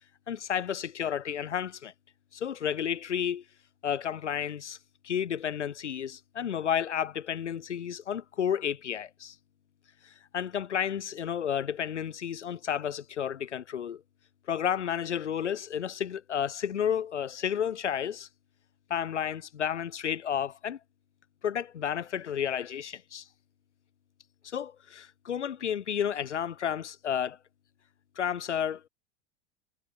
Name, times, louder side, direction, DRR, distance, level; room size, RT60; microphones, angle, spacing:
voice 1, 0.3-1.9 2.3-3.4 3.8-4.8 5.0-9.3 10.3-14.0 14.5-18.3 18.9-20.8 21.4-23.2 24.4-27.4 28.2-28.8, left 9 dB, 80° left, 1.7 m, -31 dB
figure-of-eight pair, 85°, 35 cm